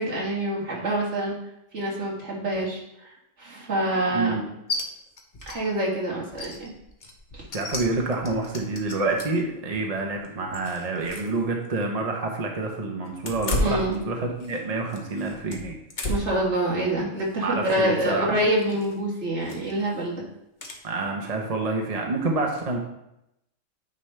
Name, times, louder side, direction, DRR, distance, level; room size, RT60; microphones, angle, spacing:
voice 1, 0.0-1.3 1.7-3.1 3.4-4.5 5.5-6.7 7.3-7.5 13.6-14.0 16.1-20.2, right 1 dB, 60° right, -4 dB, 2.1 m, -26 dB
voice 2, 4.1-4.4 7.5-15.8 17.4-18.4 20.8-22.8, right 3 dB, 35° right, 1 dB, 0.8 m, -28 dB
sound 1, 4.7-4.8 5.2-5.6 5.9-6.0 6.3-9.5 10.0-11.4 11.6-11.7 13.2-14.6 14.9-16.4 16.9-17.2 18.6-18.9 19.4-19.8 20.6-20.8, left 1 dB, 40° left, 0.9 m, -33 dB
9.4 x 4.9 x 3.3 m, 0.84 s
omnidirectional pair, 1.4 m